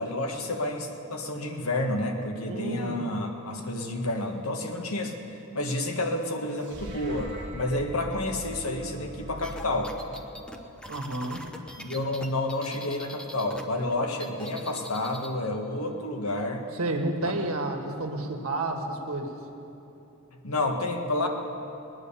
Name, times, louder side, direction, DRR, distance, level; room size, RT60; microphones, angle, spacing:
voice 1, 0.0-5.1 5.5-9.9 11.8-16.7 17.2-17.3 20.4-21.3, left 2 dB, 80° left, 3 dB, 1.6 m, -30 dB
voice 2, 2.5-3.0 10.9-11.5 16.7-19.3, right 2 dB, 75° right, 3 dB, 1.7 m, -30 dB
sound 1, 6.6-11.0, right 1 dB, 55° right, 1.7 m, -42 dB
sound 2, 9.4-13.6 13.9-15.3, equal, 5° left, 0.8 m, -42 dB
20.5 x 9.7 x 7.0 m, 2.9 s
head